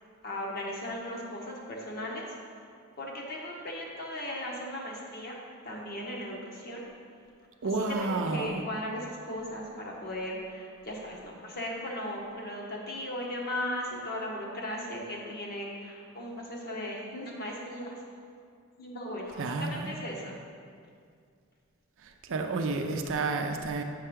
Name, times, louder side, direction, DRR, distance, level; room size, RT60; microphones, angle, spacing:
voice 1, 0.2-2.4 2.6-2.7 3.0-5.4 5.6-6.9 7.6-18.0 18.8-20.4, left 1 dB, 45° left, -2 dB, 1.2 m, -37 dB
voice 2, 7.6-8.6 19.4-19.9 22.0-23.8, right 3 dB, 60° right, 4 dB, 0.5 m, -31 dB
7.5 x 5.6 x 3.6 m, 2.2 s
head